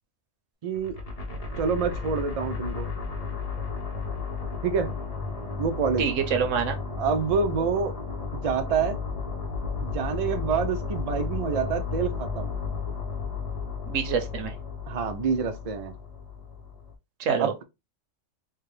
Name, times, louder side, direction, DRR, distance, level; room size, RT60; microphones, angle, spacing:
voice 1, 0.6-1.0 1.6-2.9 4.6-4.9 5.6-6.0 7.0-7.9 8.3-9.0 9.8-12.5 14.9-15.9 17.4-17.6, right 6 dB, 60° right, 0.3 m, -27 dB
sound 1, 0.7-16.9, left 5 dB, 35° left, 0.8 m, -33 dB
voice 2, 6.0-6.8 13.9-14.5 17.2-17.5, right 7 dB, 85° right, 1.1 m, -26 dB
4.5 x 2.2 x 3.2 m
omnidirectional pair, 1.3 m